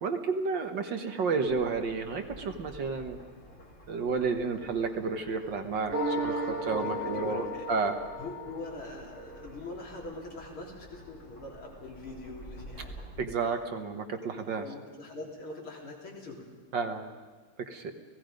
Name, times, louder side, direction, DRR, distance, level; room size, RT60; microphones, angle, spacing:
voice 1, 0.0-3.2 3.9-7.9 13.2-14.6 16.7-17.0 17.7-17.9, right 4 dB, 60° right, 6 dB, 1.9 m, -31 dB
sound 1, 1.4-13.2, equal, 35° left, 2.8 m, -50 dB
sound 2, 5.9-9.3, right 1 dB, 80° right, 3.9 m, -34 dB
voice 2, 6.6-7.6 8.2-13.0 14.6-16.5, left 2 dB, 75° left, -2 dB, 4.4 m, -43 dB
29.5 x 17.5 x 5.2 m, 1.4 s
omnidirectional pair, 2.4 m